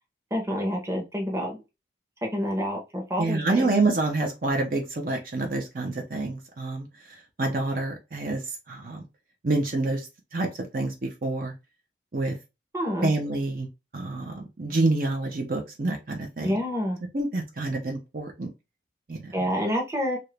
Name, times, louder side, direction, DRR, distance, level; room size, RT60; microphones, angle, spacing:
voice 1, 0.3-1.6 2.2-3.7 12.7-13.1 16.4-17.0 19.3-20.2, equal, 15° right, 1 dB, 0.9 m, -28 dB
voice 2, 3.2-6.9 7.4-8.4 8.7-9.0 9.4-10.1 10.3-11.5 12.1-12.3 13.0-13.7 13.9-16.6 17.1-18.5 19.1-19.3, right 2 dB, 50° right, 1 dB, 0.7 m, -27 dB
2.9 x 2.6 x 3.3 m, 0.25 s
head